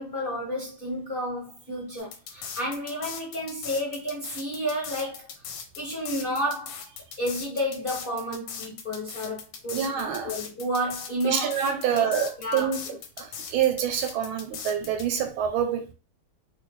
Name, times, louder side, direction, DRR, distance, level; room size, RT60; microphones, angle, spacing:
voice 1, 0.0-5.3 5.8-6.9 7.2-12.1 12.4-12.9, equal, 35° left, 0.9 m, -31 dB
sound 1, 2.0-15.1, left 7 dB, 75° left, 1.3 m, -39 dB
voice 2, 9.7-10.3 11.2-12.8 13.2-15.9, right 8 dB, 80° right, 1.4 m, -26 dB
3.2 x 3.1 x 3.1 m
omnidirectional pair, 2.4 m